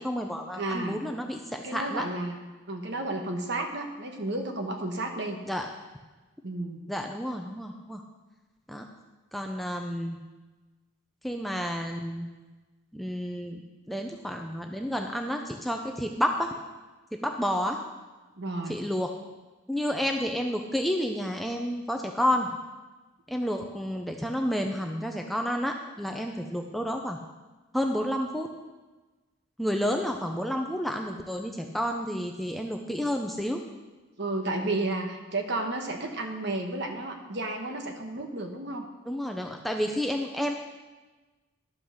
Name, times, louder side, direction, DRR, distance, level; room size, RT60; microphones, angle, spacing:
voice 1, 0.0-2.0 5.5-5.6 6.9-8.0 8.7-8.8 9.3-10.2 11.2-12.3 12.9-13.6 13.9-16.5 17.2-17.8 18.7-19.1 19.7-22.5 23.3-27.2 27.7-28.5 29.6-33.6 39.1-40.5, equal, ahead, 2 dB, 0.5 m, -30 dB
voice 2, 0.6-1.0 1.6-2.4 2.7-5.4 6.4-6.8 18.4-18.8 34.2-38.9, right 2 dB, 55° right, 4 dB, 1.3 m, -32 dB
11.5 x 5.8 x 6.5 m, 1.2 s
head